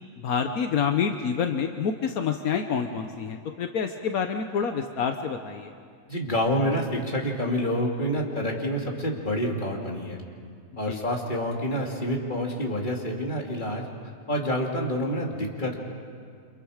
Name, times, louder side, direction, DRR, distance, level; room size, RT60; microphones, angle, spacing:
voice 1, 0.2-5.7 10.8-11.0, left 6 dB, 75° left, 6 dB, 1.4 m, -28 dB
voice 2, 6.1-10.2 10.8-13.9 14.3-15.8, equal, 35° left, 0 dB, 2.7 m, -28 dB
29.5 x 26.5 x 5.0 m, 2.2 s
omnidirectional pair, 1.5 m